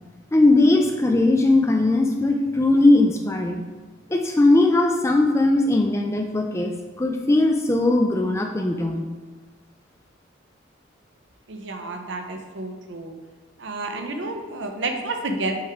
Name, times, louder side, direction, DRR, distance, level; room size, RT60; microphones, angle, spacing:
voice 1, 0.3-3.6 4.1-9.1, left 2 dB, 15° left, 3 dB, 0.3 m, -19 dB
voice 2, 11.5-13.2 13.6-15.6, right 2 dB, 65° right, 4 dB, 0.7 m, -30 dB
7.7 x 3.5 x 3.4 m, 1.3 s
head